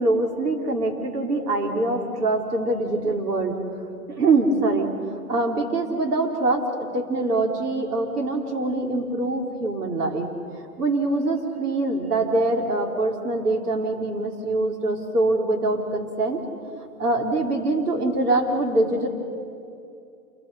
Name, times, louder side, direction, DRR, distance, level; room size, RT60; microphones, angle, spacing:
voice 1, 0.0-3.6 4.1-4.9 5.3-10.3 10.8-16.4 17.0-19.1, right 2 dB, 80° right, 2 dB, 3.7 m, -24 dB
27.5 x 22.0 x 5.5 m, 2.6 s
hypercardioid pair, 145°, 46 cm